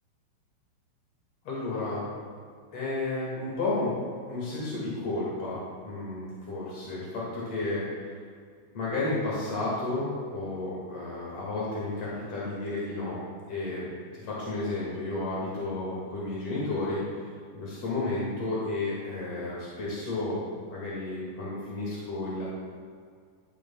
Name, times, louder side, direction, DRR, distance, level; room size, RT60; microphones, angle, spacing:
voice 1, 1.4-2.0 2.7-3.9 4.3-7.8 8.7-13.2 13.5-13.9 14.1-17.3 17.5-20.4 20.7-22.4, left 2 dB, 50° left, -7 dB, 1.8 m, -32 dB
11.5 x 11.5 x 2.3 m, 2.1 s
omnidirectional pair, 5.8 m